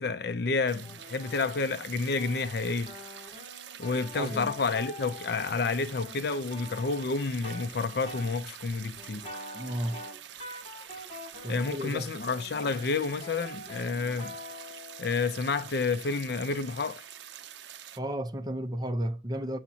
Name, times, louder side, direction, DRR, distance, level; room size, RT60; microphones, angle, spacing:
voice 1, 0.0-3.0 3.8-9.3 11.5-14.4 15.0-17.0, left 4 dB, 55° left, 0.5 m, -30 dB
sound 1, 0.7-18.0, right 10 dB, 70° right, 0.6 m, -46 dB
sound 2, 0.8-7.7 8.0-8.3 8.9-18.0, left 2 dB, 30° left, 5.0 m, -46 dB
voice 2, 4.1-4.5 9.5-10.0 11.4-12.1 18.0-19.6, equal, 20° right, 0.7 m, -33 dB
7.2 x 7.1 x 2.8 m
head